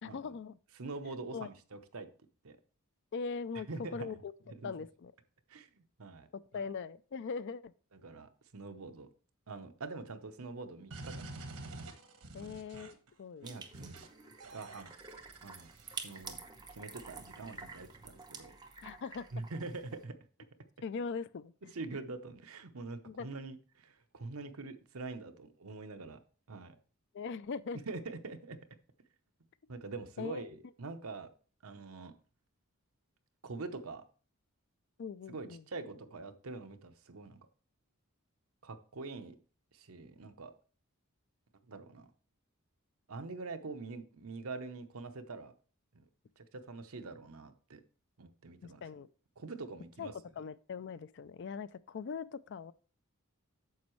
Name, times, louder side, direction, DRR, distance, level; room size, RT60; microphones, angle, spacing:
voice 1, 0.0-0.6 1.1-1.5 3.1-4.3 4.6-5.1 6.3-7.7 12.3-13.5 18.8-19.3 20.8-21.7 23.1-23.3 27.1-27.8 30.2-30.4 35.0-35.6 48.6-49.1 50.0-50.1 50.4-52.7, left 5 dB, 55° left, 0.4 m, -41 dB
voice 2, 0.8-2.1 2.4-2.6 3.5-4.1 4.5-4.7 5.5-6.3 7.9-9.1 9.5-11.4 12.4-12.6 13.4-14.1 14.5-14.9 15.4-15.7 16.0-18.6 19.3-20.2 21.7-26.2 26.5-26.8 27.9-28.6 29.7-31.3 31.6-32.1 33.4-34.0 35.3-37.4 38.6-39.4 39.7-40.5 41.7-42.1 43.1-45.5 45.9-46.1 46.4-47.8 48.2-48.9 49.4-50.1, right 3 dB, 75° right, 0.9 m, -44 dB
sound 1, 10.9-13.1 13.7-14.1 14.4-16.2, right 2 dB, 90° right, 1.2 m, -48 dB
sound 2, 13.4-20.0, right 4 dB, 20° right, 0.9 m, -49 dB
9.4 x 7.0 x 3.1 m
head